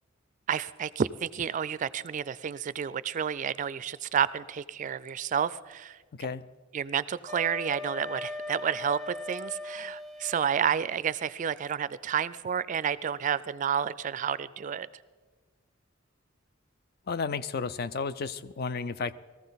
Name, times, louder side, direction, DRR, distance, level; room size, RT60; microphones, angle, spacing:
voice 1, 0.5-6.0 6.7-14.9, right 8 dB, 40° right, 17 dB, 0.3 m, -30 dB
voice 2, 6.1-6.5 17.1-19.1, left 5 dB, 50° left, 15 dB, 0.5 m, -32 dB
Wind instrument woodwind instrument, 7.3-10.4, left 2 dB, ahead, 0.8 m, -39 dB
20.0 x 14.5 x 4.0 m, 1.4 s
head